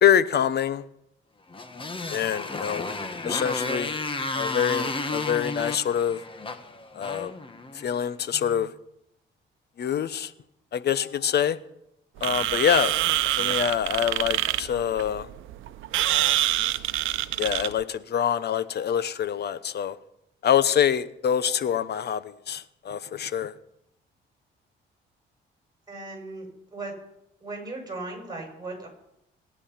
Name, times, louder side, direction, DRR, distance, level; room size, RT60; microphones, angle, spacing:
voice 1, 0.0-0.8 2.1-2.9 3.2-4.0 4.3-6.2 6.9-7.3 7.7-8.7 9.8-10.3 10.7-11.6 12.2-12.9 13.3-15.3 16.1-16.4 17.4-20.0 20.4-23.5, left 9 dB, 55° left, 1.0 m, -25 dB
Motorcycle, 1.5-8.0, left 2 dB, 25° left, 1.7 m, -32 dB
sound 1, 12.2-17.8, right 14 dB, 85° right, 0.8 m, -26 dB
voice 2, 25.9-26.9 27.4-28.9, right 2 dB, 20° right, 7.4 m, -37 dB
24.5 x 9.9 x 5.8 m
cardioid pair, 90°, 20 cm